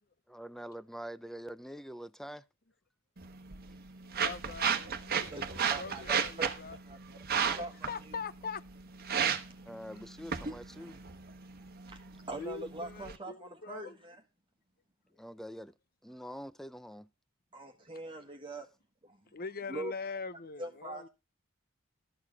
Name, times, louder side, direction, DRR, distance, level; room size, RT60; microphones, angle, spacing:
voice 1, 0.3-2.4 9.7-10.9 15.2-15.7 16.0-17.1, equal, ahead, 0.6 m, -45 dB
sound 1, 3.2-13.2, right 7 dB, 50° right, 1.2 m, -35 dB
voice 2, 4.0-6.8 7.6-8.6 12.4-14.0 17.9-18.0 19.3-21.1, left 5 dB, 45° left, 0.8 m, -42 dB
voice 3, 5.3-6.5 6.8-7.9 9.3-9.6 10.4-10.5 10.8-10.9 11.5-14.2 17.5-18.7 19.0-19.2 19.7-19.9 20.6-21.1, right 2 dB, 25° right, 1.5 m, -43 dB
13.0 x 7.3 x 5.3 m
head